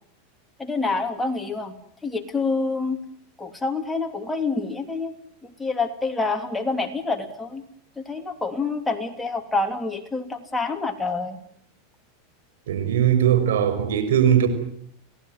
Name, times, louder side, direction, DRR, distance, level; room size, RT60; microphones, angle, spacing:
voice 1, 0.6-1.7 2.0-3.0 3.4-5.2 5.6-7.6 8.0-11.4, left 3 dB, 10° left, 3.1 m, -27 dB
voice 2, 12.7-14.5, right 9 dB, 85° right, 6.3 m, -19 dB
27.5 x 18.5 x 9.4 m
supercardioid pair, 125°, 0 cm